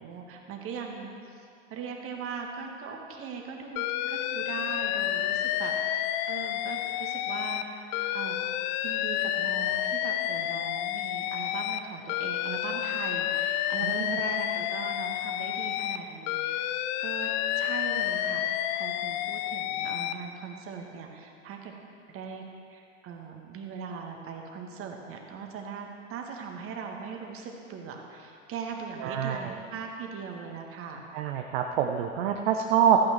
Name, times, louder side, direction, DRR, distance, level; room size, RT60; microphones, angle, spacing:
voice 1, 0.0-8.4 8.8-21.7 22.1-22.4 22.7-31.0, right 6 dB, 35° right, 2 dB, 1.7 m, -40 dB
Alarm, 3.8-7.6 7.9-11.8 12.1-16.0 16.3-20.1, left 12 dB, 35° left, 0.4 m, -30 dB
voice 2, 13.8-14.2 29.0-29.5 31.1-33.0, right 8 dB, 50° right, 4 dB, 0.8 m, -26 dB
14.0 x 9.0 x 4.5 m, 2.5 s
figure-of-eight pair, 85°, 38 cm